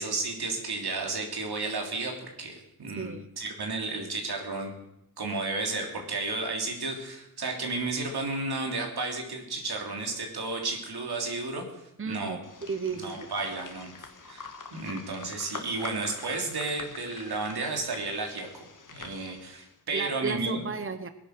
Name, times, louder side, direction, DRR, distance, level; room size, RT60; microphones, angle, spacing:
voice 1, 0.0-4.7 5.2-12.4 12.9-13.9 14.3-18.6 18.9-20.6, right 3 dB, 90° right, 2 dB, 3.2 m, -33 dB
voice 2, 12.0-13.3 19.9-21.1, right 5 dB, 35° right, 10 dB, 0.9 m, -34 dB
sound 1, 12.4-19.7, left 4 dB, 55° left, 1.7 m, -45 dB
19.0 x 10.5 x 6.5 m, 0.82 s
wide cardioid pair, 80°, 37 cm